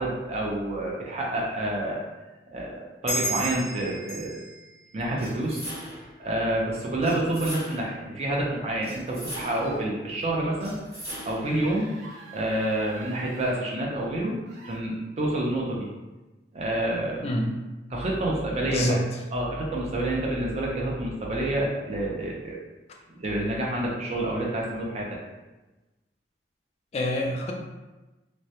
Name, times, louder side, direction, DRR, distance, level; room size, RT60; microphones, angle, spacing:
voice 1, 0.0-2.1 2.5-4.4 4.9-5.6 6.2-10.8 11.2-11.9 12.3-14.4 14.6-15.9 16.5-17.3 17.9-19.0 19.3-22.6 23.1-25.2, right 1 dB, 40° right, -3 dB, 0.5 m, -28 dB
sound 1, 3.1-6.2, right 1 dB, 20° left, 0.8 m, -34 dB
sound 2, 5.2-6.2 7.0-8.0 8.8-9.8 10.6-11.6, equal, 20° right, 0.8 m, -40 dB
sound 3, 9.4-9.9 11.4-13.5 14.5-14.8, right 2 dB, 85° right, 0.6 m, -45 dB
voice 2, 18.7-19.1 26.9-27.5, left 1 dB, 35° left, 0 dB, 0.3 m, -26 dB
2.2 x 2.1 x 2.7 m, 1.1 s
head